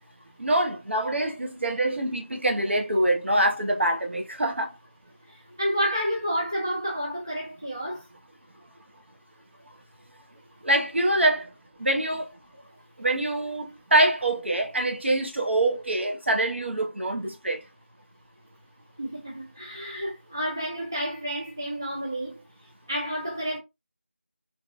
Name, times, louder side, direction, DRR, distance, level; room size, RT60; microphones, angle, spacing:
voice 1, 0.4-4.7 10.6-11.5 11.8-12.3 13.0-17.6, right 1 dB, 65° right, 1.0 m, -25 dB
voice 2, 5.3-8.0 19.0-22.4 22.9-23.6, equal, 20° right, 0.4 m, -30 dB
2.8 x 2.3 x 2.5 m
figure-of-eight pair, 175°, 7 cm